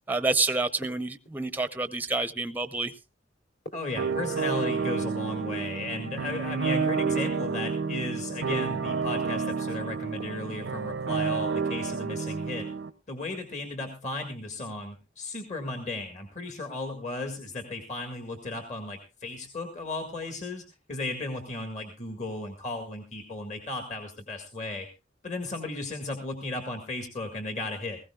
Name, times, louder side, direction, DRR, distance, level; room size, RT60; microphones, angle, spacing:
voice 1, 0.1-2.9, right 3 dB, 10° right, 0.6 m, -28 dB
sound 1, 0.8-1.6 3.7-4.7 6.9-7.6 10.2-10.8, equal, 65° left, 4.0 m, -47 dB
voice 2, 3.7-12.7 13.1-20.6 20.9-24.9 25.2-28.0, left 2 dB, 40° left, 1.9 m, -35 dB
sound 2, 4.0-12.9, right 5 dB, 80° right, 0.6 m, -30 dB
19.0 x 16.0 x 2.3 m
head